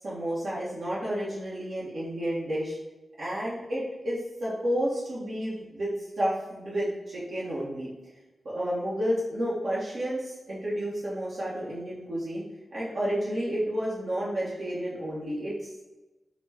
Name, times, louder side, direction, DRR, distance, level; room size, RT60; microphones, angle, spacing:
voice 1, 0.0-2.8 3.2-7.9 8.4-12.4 12.7-15.5, equal, 65° right, -8 dB, 1.1 m, -31 dB
4.4 x 2.2 x 4.1 m, 1.1 s
cardioid pair, 55°, 0 cm